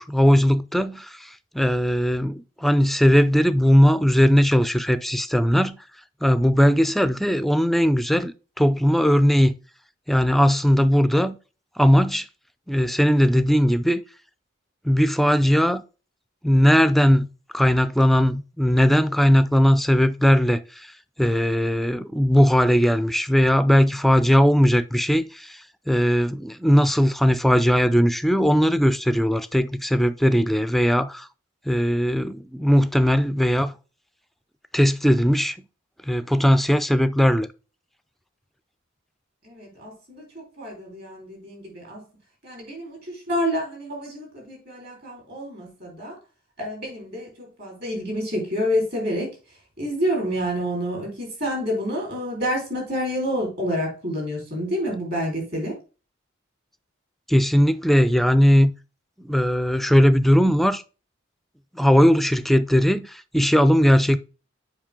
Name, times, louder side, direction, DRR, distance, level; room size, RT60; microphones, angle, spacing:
voice 1, 0.0-5.8 6.2-9.5 10.1-11.4 11.8-12.3 12.7-14.0 14.9-15.8 16.4-17.3 17.5-20.9 21.2-31.3 31.7-33.7 34.7-35.6 36.1-37.5 57.3-58.7 59.2-60.8 61.7-64.2, equal, ahead, 0.3 m, -19 dB
voice 2, 39.4-42.0 42.4-46.2 46.6-49.3 49.8-55.7, equal, 50° right, 4.4 m, -28 dB
7.3 x 5.3 x 3.6 m
head